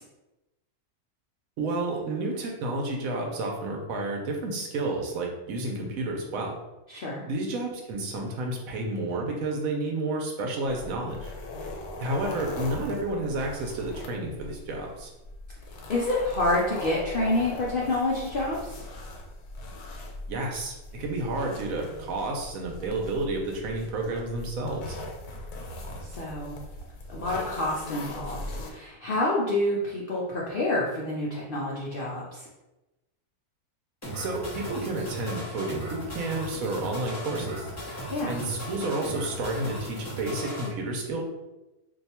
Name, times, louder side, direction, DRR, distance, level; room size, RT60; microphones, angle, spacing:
voice 1, 1.6-6.6 7.3-11.3 12.0-15.1 20.3-25.0 34.2-37.7 38.3-41.2, right 2 dB, 70° right, 1 dB, 1.1 m, -31 dB
voice 2, 6.9-7.2 12.2-12.5 15.9-18.8 26.0-26.6 27.1-28.4 28.6-32.5 38.1-38.4, left 1 dB, 70° left, -5 dB, 0.5 m, -28 dB
sound 1, 10.7-28.7, left 2 dB, 90° left, 1.2 m, -40 dB
sound 2, 34.0-40.7, equal, 15° left, 0.6 m, -37 dB
2.8 x 2.3 x 4.2 m, 1.0 s
omnidirectional pair, 1.6 m